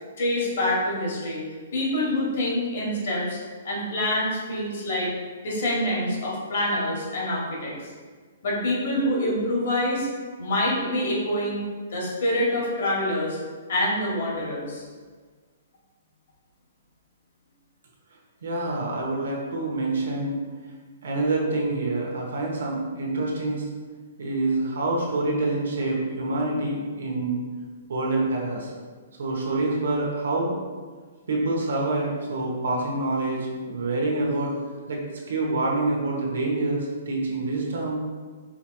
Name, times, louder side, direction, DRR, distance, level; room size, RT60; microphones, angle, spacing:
voice 1, 0.2-1.4 1.7-3.4 3.6-5.1 5.4-7.7 8.4-10.1 10.4-11.6 11.9-13.4 13.7-14.8, left 1 dB, 60° left, -4 dB, 1.3 m, -26 dB
voice 2, 18.4-20.4 21.0-23.7 24.2-27.4 27.9-28.7 29.2-30.6 31.3-34.5 34.9-35.0 35.3-38.0, right 2 dB, 80° right, -2 dB, 0.9 m, -26 dB
4.8 x 3.0 x 2.3 m, 1.5 s
hypercardioid pair, 165°, 0 cm